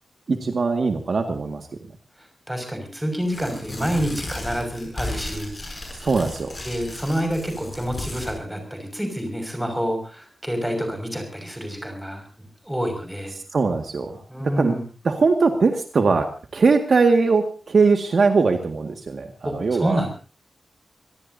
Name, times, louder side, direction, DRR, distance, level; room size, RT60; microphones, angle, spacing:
voice 1, 0.3-1.6 6.0-6.6 13.5-14.2 14.6-14.7 15.1-16.3 16.5-20.0, right 4 dB, 55° right, 5 dB, 1.9 m, -20 dB
voice 2, 2.2-5.8 6.6-12.3 12.6-13.4 14.3-14.8 19.4-20.1, equal, 5° right, 5 dB, 6.1 m, -28 dB
Tearing, 3.2-8.4, left 2 dB, 25° left, 7.2 m, -35 dB
26.0 x 18.5 x 2.8 m, 0.34 s
wide cardioid pair, 155°, 0 cm